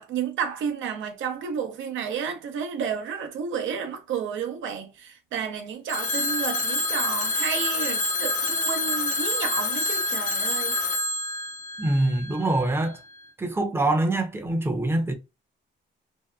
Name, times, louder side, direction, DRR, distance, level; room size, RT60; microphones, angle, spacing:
voice 1, 0.0-10.8, right 7 dB, 75° right, 0.7 m, -31 dB
Telephone, 5.9-12.7, left 2 dB, 40° left, 0.6 m, -27 dB
voice 2, 11.8-13.0 13.4-15.1, right 2 dB, 10° right, 0.6 m, -24 dB
2.7 x 2.2 x 2.3 m
cardioid pair, 90°, 20 cm